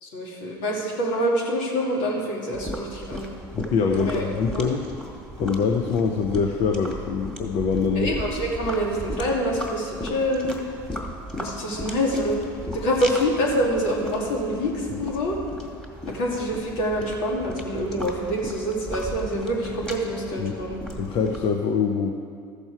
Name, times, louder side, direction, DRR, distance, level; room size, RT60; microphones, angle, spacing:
voice 1, 0.0-3.3 4.0-4.2 4.5-4.6 7.9-10.5 11.4-12.4 12.7-15.4 16.0-20.8, equal, 75° left, -2 dB, 2.4 m, -26 dB
sound 1, 2.5-21.5, equal, 5° left, 1.9 m, -36 dB
voice 2, 3.5-4.8 5.4-8.1 20.4-20.5 21.0-22.1, left 5 dB, 55° left, 3 dB, 0.8 m, -24 dB
14.0 x 6.9 x 4.7 m, 2.2 s
supercardioid pair, 85°, 12 cm